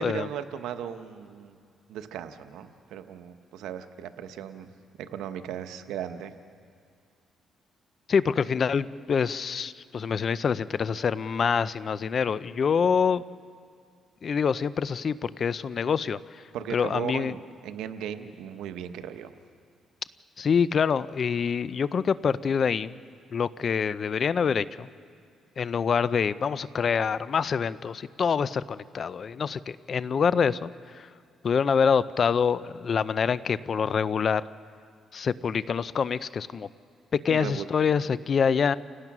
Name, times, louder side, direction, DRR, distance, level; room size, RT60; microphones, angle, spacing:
voice 1, 0.0-1.6 1.9-4.7 5.0-6.3 16.5-19.3 37.3-37.6, right 9 dB, 90° right, 9 dB, 1.0 m, -37 dB
voice 2, 8.1-13.2 14.2-16.4 16.7-17.3 20.4-23.0 23.3-24.9 25.6-31.1 31.4-34.4 35.1-36.7 37.1-38.8, left 6 dB, 50° left, 17 dB, 0.6 m, -26 dB
29.5 x 17.5 x 6.1 m, 2.2 s
cardioid pair, 90°, 0 cm